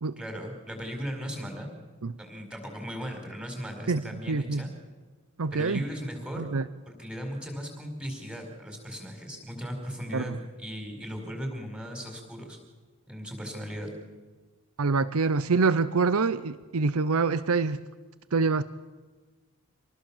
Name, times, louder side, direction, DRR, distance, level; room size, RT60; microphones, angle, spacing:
voice 1, 0.2-1.7 2.2-4.7 5.5-6.5 6.9-12.6 13.1-13.9, equal, 5° right, 3 dB, 4.8 m, -37 dB
voice 2, 3.9-4.7 5.4-5.8 6.4-6.6 10.1-10.4 14.8-17.8 18.3-18.6, right 4 dB, 90° right, 15 dB, 0.7 m, -26 dB
26.5 x 19.0 x 7.3 m, 1.4 s
head